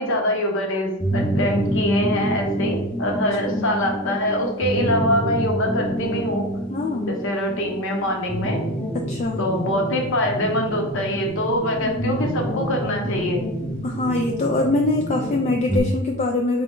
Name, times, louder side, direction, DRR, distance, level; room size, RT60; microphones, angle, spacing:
voice 1, 0.0-6.5 7.1-8.6 9.4-13.4, left 1 dB, 65° left, 2 dB, 0.9 m, -24 dB
sound 1, 1.0-15.8, right 1 dB, 5° left, 0.7 m, -27 dB
voice 2, 6.7-7.2 8.9-9.4 11.8-12.2 13.8-16.6, left 2 dB, 35° left, 1 dB, 0.3 m, -24 dB
3.8 x 3.3 x 3.8 m, 0.88 s
head